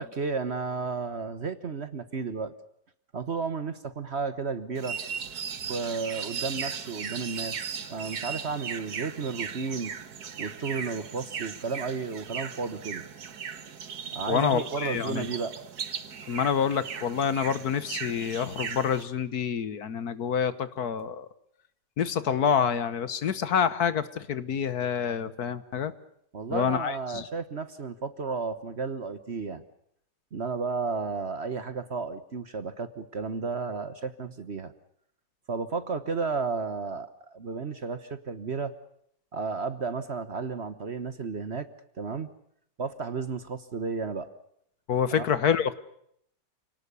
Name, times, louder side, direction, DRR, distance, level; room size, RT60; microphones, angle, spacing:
voice 1, 0.0-2.5 3.1-5.0 5.7-9.9 10.4-13.0 14.1-15.6 26.3-29.6 30.3-34.7 35.5-38.7 39.3-41.7 42.0-42.3 42.8-44.3 45.1-45.3, right 4 dB, 45° right, 12 dB, 1.3 m, -33 dB
sound 1, 4.7-19.0, right 7 dB, 65° right, 1.9 m, -37 dB
voice 2, 14.3-15.3 16.3-21.3 22.0-25.9 26.5-27.3 44.9-45.7, left 7 dB, 65° left, 14 dB, 1.6 m, -27 dB
28.5 x 18.5 x 6.8 m, 0.71 s
omnidirectional pair, 1.8 m